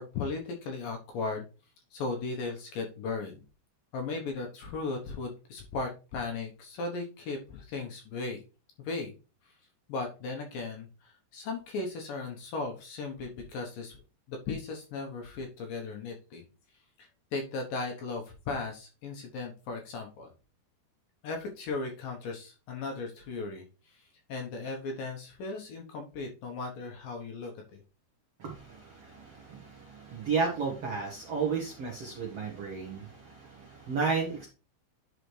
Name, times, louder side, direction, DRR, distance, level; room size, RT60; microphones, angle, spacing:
voice 1, 0.0-1.5 1.9-3.4 3.9-8.4 8.8-9.1 9.4-9.5 9.9-14.0 14.3-16.4 17.0-20.3 21.2-27.8, left 3 dB, 70° left, 2 dB, 2.3 m, -37 dB
voice 2, 28.4-34.5, right 5 dB, 80° right, -1 dB, 1.3 m, -33 dB
10.5 x 4.9 x 3.2 m, 0.33 s
omnidirectional pair, 5.0 m